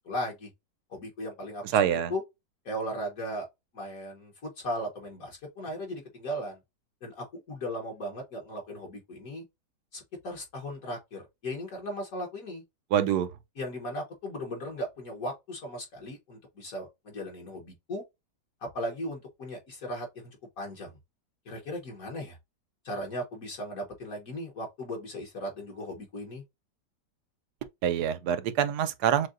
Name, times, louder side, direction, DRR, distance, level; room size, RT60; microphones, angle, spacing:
voice 1, 0.0-0.5 0.9-2.2 2.6-3.5 3.7-6.6 7.0-9.4 9.9-12.6 13.6-18.0 18.6-20.1 20.6-20.9 21.4-22.4 22.8-26.4, equal, 55° left, 1.4 m, -37 dB
voice 2, 1.7-2.1 12.9-13.3 27.8-29.3, right 9 dB, 70° right, 1.1 m, -25 dB
6.4 x 2.2 x 2.5 m
omnidirectional pair, 1.9 m